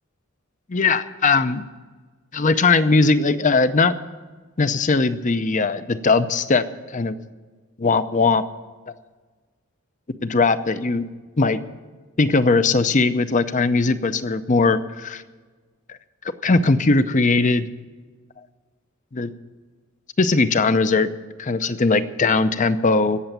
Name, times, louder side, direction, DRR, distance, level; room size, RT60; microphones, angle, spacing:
voice 1, 0.7-1.6 2.3-3.9 4.6-6.6 6.9-7.2 7.8-8.4 8.9-9.0 10.2-11.0 11.4-11.6 12.2-15.2 15.9-16.0 16.4-17.7 19.1-19.3 20.2-21.1 21.4-23.2, left 3 dB, 35° left, 12 dB, 0.6 m, -19 dB
17.0 x 7.0 x 9.0 m, 1.4 s
head